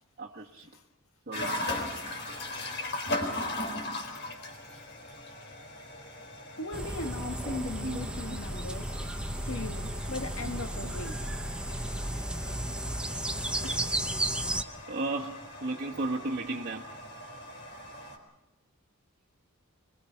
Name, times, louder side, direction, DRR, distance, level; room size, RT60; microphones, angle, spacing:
voice 1, 0.2-0.7 1.3-1.9 7.0-8.4 9.8-10.0 10.4-10.5 10.8-10.9 13.9-14.0 14.9-17.0, right 2 dB, 45° right, 1.4 m, -36 dB
sound 1, 1.3-18.2, left 1 dB, 55° left, 4.3 m, -39 dB
voice 2, 6.6-8.9 9.2-11.2 11.8-13.0 13.3-13.8, left 2 dB, 75° left, 1.6 m, -40 dB
sound 2, 6.7-14.6, right 1 dB, 5° right, 0.9 m, -34 dB
26.0 x 22.0 x 5.8 m
head